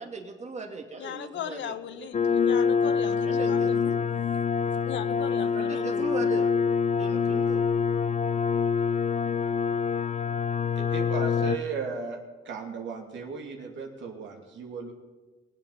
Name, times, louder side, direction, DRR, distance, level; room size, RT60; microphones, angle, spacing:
voice 1, 0.0-2.1 3.2-3.7 5.5-6.5 6.9-7.6, right 4 dB, 35° right, 3 dB, 2.5 m, -38 dB
voice 2, 1.0-4.0 4.8-6.1, left 9 dB, 70° left, 12 dB, 0.9 m, -38 dB
sound 1, 2.1-11.6, left 6 dB, 35° left, 0.6 m, -25 dB
voice 3, 10.8-12.2 12.4-14.9, right 5 dB, 70° right, 2 dB, 2.7 m, -36 dB
22.5 x 8.3 x 5.5 m, 1.2 s
cardioid pair, 90°, 20 cm